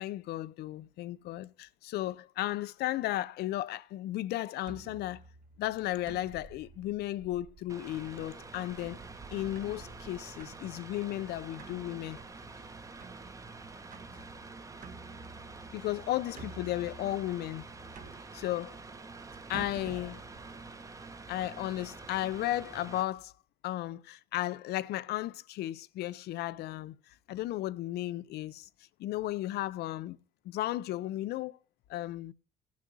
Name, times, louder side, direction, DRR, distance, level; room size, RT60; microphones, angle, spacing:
voice 1, 0.0-5.2 5.6-9.0 9.3-12.2 15.7-17.7 18.3-18.8 19.5-20.2 21.3-23.3 23.6-28.7 29.0-30.2 30.4-31.6 31.9-32.3, left 14 dB, 75° left, 0.6 m, -34 dB
sound 1, 4.6-21.5, right 4 dB, 50° right, 1.4 m, -52 dB
Mechanical fan, 7.7-23.0, right 3 dB, 20° right, 1.0 m, -48 dB
15.5 x 6.4 x 4.0 m
cardioid pair, 110°, 17 cm